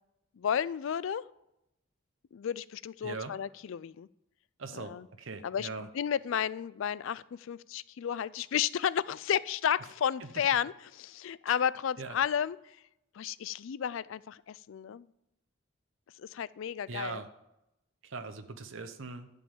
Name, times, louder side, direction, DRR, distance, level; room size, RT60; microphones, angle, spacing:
voice 1, 0.4-1.2 2.3-4.1 4.7-5.1 5.4-12.8 13.1-15.1 16.2-17.2, left 8 dB, 65° left, 19 dB, 0.3 m, -32 dB
voice 2, 3.0-3.3 4.6-5.9 10.2-10.3 11.5-11.6 12.0-12.1 16.9-17.3 18.0-19.3, right 3 dB, 65° right, 8 dB, 0.8 m, -40 dB
12.0 x 5.4 x 7.3 m, 0.87 s
head